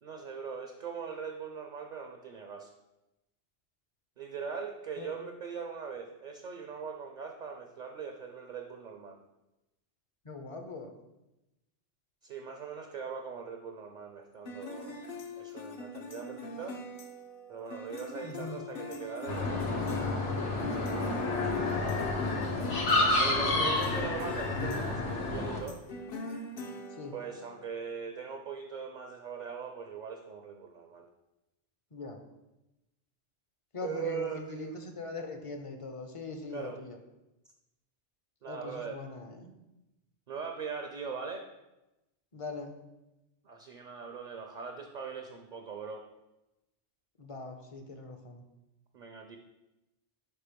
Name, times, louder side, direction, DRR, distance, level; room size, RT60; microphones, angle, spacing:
voice 1, 0.0-2.7 4.2-9.2 12.2-15.0 15.3-16.8 17.5-19.6 23.2-25.8 27.1-31.1 33.8-34.8 36.5-36.8 38.4-39.0 40.3-41.5 43.4-46.0 48.9-49.4, right 6 dB, 50° right, 4 dB, 0.6 m, -40 dB
voice 2, 10.2-11.0 18.2-18.6 22.2-22.5 23.5-24.1 27.0-27.1 31.9-32.2 33.7-37.0 38.5-39.5 42.3-42.8 47.2-48.4, left 3 dB, 35° left, 5 dB, 0.6 m, -41 dB
sound 1, 14.5-27.7, left 2 dB, 60° left, 0.9 m, -42 dB
sound 2, 19.3-25.6, left 2 dB, 75° left, 1.3 m, -30 dB
5.0 x 4.5 x 5.1 m, 0.96 s
omnidirectional pair, 1.2 m